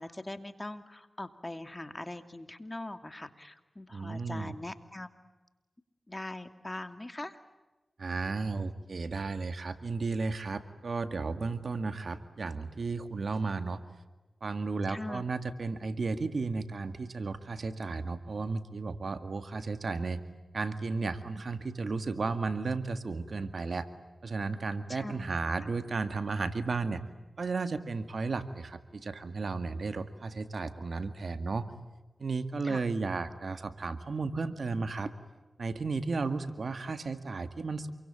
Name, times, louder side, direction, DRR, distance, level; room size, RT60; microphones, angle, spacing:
voice 1, 0.0-5.1 6.1-7.4 14.9-15.2 24.9-25.3 32.6-32.8, left 1 dB, 30° left, 9 dB, 2.6 m, -41 dB
voice 2, 3.9-4.5 8.0-13.8 14.4-20.2 20.5-23.9 24.2-27.0 27.4-31.7 32.2-35.1 35.6-37.9, right 4 dB, 70° right, 10 dB, 2.0 m, -34 dB
28.0 x 23.5 x 8.8 m, 1.1 s
cardioid pair, 40°, 0 cm